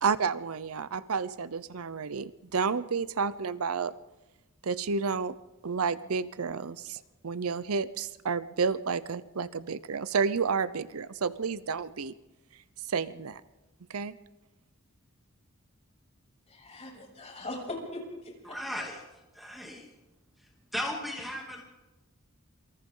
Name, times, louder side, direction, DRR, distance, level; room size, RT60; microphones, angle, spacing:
voice 1, 0.0-3.9 4.6-5.4 5.6-12.1 12.9-13.4 13.9-14.2, right 5 dB, 75° right, 15 dB, 0.7 m, -30 dB
voice 2, 16.5-18.6, left 2 dB, 30° left, -1 dB, 7.0 m, -40 dB
voice 3, 18.4-19.9 20.4-21.6, equal, ahead, -1 dB, 2.8 m, -37 dB
27.5 x 24.0 x 3.9 m, 1.0 s
head